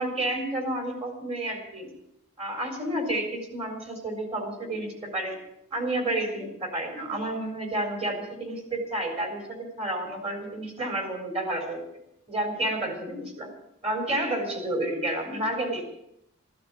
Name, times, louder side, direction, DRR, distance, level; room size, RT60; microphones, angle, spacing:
voice 1, 0.0-1.9 2.4-5.4 5.7-11.8 12.3-13.5 13.8-15.8, right 1 dB, 30° right, 3 dB, 4.0 m, -30 dB
14.0 x 13.0 x 7.2 m, 0.79 s
head